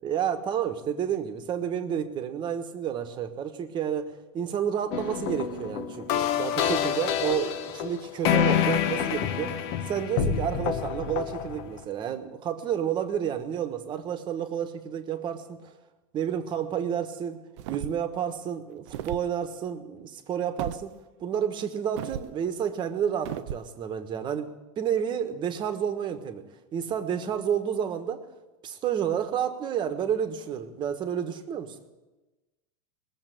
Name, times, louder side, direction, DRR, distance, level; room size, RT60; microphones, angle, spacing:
voice 1, 0.0-6.1 6.4-9.6 9.9-15.7 16.1-17.4 17.7-20.9 21.2-26.4 26.7-28.2 28.6-31.8, right 8 dB, 30° right, 8 dB, 1.3 m, -30 dB
sound 1, 4.9-11.8, left 9 dB, 55° left, 1.3 m, -27 dB
sound 2, 17.6-18.1 18.9-19.3 20.6-20.8 22.0-22.3 23.3-23.7, right 12 dB, 65° right, 0.6 m, -35 dB
20.0 x 7.4 x 9.2 m, 1.1 s
supercardioid pair, 150°, 16 cm